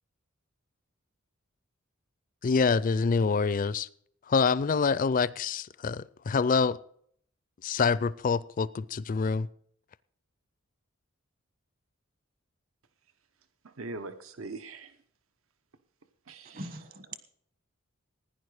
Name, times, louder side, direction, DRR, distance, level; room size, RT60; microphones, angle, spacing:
voice 1, 2.4-3.9 4.3-6.8 7.6-9.5, left 5 dB, 40° left, 0.4 m, -26 dB
voice 2, 13.6-15.0 16.3-16.8, right 3 dB, 80° right, 1.0 m, -42 dB
voice 3, 16.4-17.2, right 2 dB, 45° right, 1.2 m, -41 dB
15.5 x 10.0 x 4.9 m
head